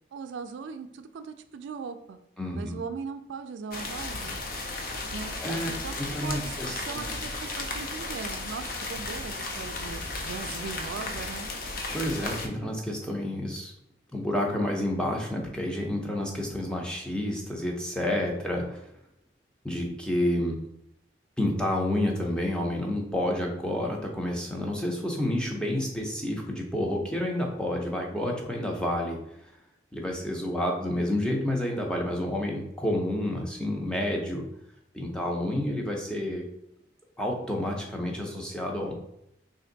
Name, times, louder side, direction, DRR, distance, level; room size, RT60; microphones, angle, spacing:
voice 1, 0.1-2.2 2.6-4.4 5.1-5.3 5.7-11.5, right 5 dB, 85° right, 9 dB, 0.3 m, -39 dB
voice 2, 2.4-2.8 5.4-7.0 11.9-13.7 14.1-18.9 19.6-20.6 21.4-29.5 29.9-34.4 34.9-36.5 37.2-38.9, left 1 dB, 5° left, -1 dB, 0.6 m, -29 dB
sound 1, 3.7-12.5, left 3 dB, 50° left, 0.5 m, -34 dB
3.3 x 2.6 x 3.8 m, 0.78 s
head